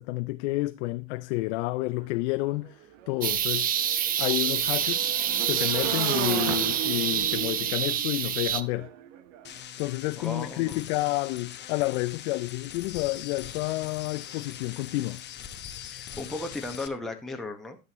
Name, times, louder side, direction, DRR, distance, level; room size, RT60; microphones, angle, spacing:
voice 1, 0.0-3.7 4.2-5.1 5.5-8.9 9.8-15.2, left 20 dB, 55° left, 0.5 m, -30 dB
Motorcycle / Engine, 2.0-2.1 2.4-9.5, right 11 dB, 60° right, 1.1 m, -36 dB
sound 1, 3.2-8.6, right 9 dB, 20° right, 0.5 m, -27 dB
sound 2, 9.4-16.9, left 10 dB, 25° left, 1.0 m, -42 dB
voice 2, 10.2-10.8 15.9-17.8, left 2 dB, ahead, 1.2 m, -35 dB
12.5 x 6.6 x 2.9 m
hypercardioid pair, 105°, 42 cm